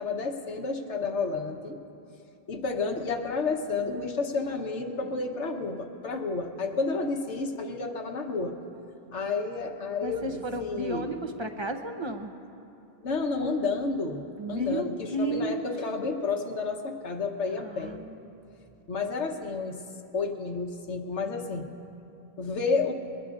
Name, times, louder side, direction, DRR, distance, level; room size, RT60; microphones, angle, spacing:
voice 1, 0.0-1.8 2.5-8.5 9.1-11.1 13.0-18.0 18.9-19.8 20.1-21.7 22.4-22.9, left 4 dB, 90° left, 4 dB, 1.4 m, -31 dB
voice 2, 3.9-4.5 5.0-5.1 10.0-12.3 14.4-15.7 17.6-18.2, right 1 dB, 30° right, 5 dB, 0.7 m, -33 dB
22.5 x 20.0 x 2.5 m, 2.8 s
omnidirectional pair, 1.2 m